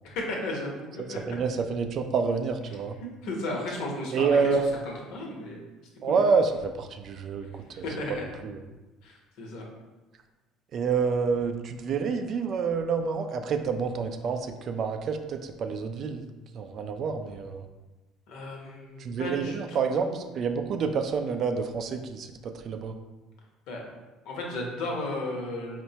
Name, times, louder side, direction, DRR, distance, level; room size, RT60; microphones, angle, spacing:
voice 1, 0.0-1.2 3.2-4.6 4.8-5.6 6.0-6.2 7.7-8.2 9.0-9.6 18.3-20.2 23.7-23.8 24.2-25.8, left 2 dB, 75° left, -1 dB, 0.8 m, -34 dB
voice 2, 1.0-3.0 4.1-4.7 6.0-7.5 7.8-7.9 8.4-8.6 10.7-16.3 16.5-17.6 19.0-22.9, right 5 dB, 50° right, 6 dB, 0.3 m, -28 dB
4.4 x 2.1 x 2.7 m, 1.2 s
supercardioid pair, 100°, 0 cm